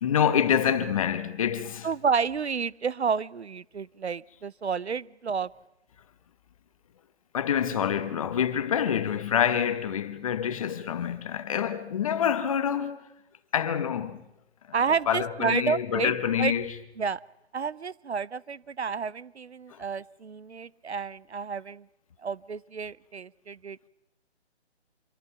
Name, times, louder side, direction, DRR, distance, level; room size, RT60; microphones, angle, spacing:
voice 1, 0.0-1.9 7.3-13.0 13.5-14.2 15.1-16.7 19.7-19.8, left 8 dB, 30° left, 1.3 m, -26 dB
voice 2, 1.8-5.5 14.7-16.5 17.0-17.2 17.5-21.9 22.2-23.9, right 6 dB, 70° right, 0.8 m, -30 dB
26.0 x 24.0 x 5.9 m
figure-of-eight pair, 150°, 34 cm